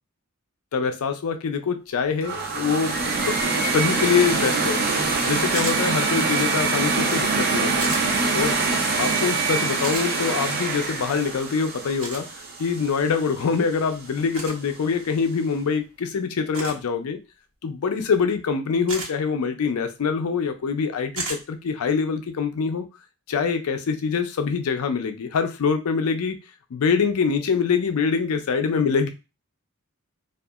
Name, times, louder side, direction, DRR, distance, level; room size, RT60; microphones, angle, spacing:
voice 1, 0.7-3.0 3.2-3.3 3.7-4.8 5.2-7.9 8.3-8.6 9.0-12.3 12.6-17.2 17.6-22.9 23.3-26.4 26.7-29.1, left 5 dB, 75° left, 7 dB, 0.4 m, -24 dB
sound 1, 2.2-13.2, right 3 dB, 45° right, 0.5 m, -24 dB
sound 2, 5.5-5.8 7.8-8.0 9.8-10.1 12.0-12.2 14.3-14.6 16.5-16.8 18.9-19.1 21.2-21.4, right 3 dB, 70° right, 1.0 m, -31 dB
2.7 x 2.4 x 2.3 m, 0.28 s
head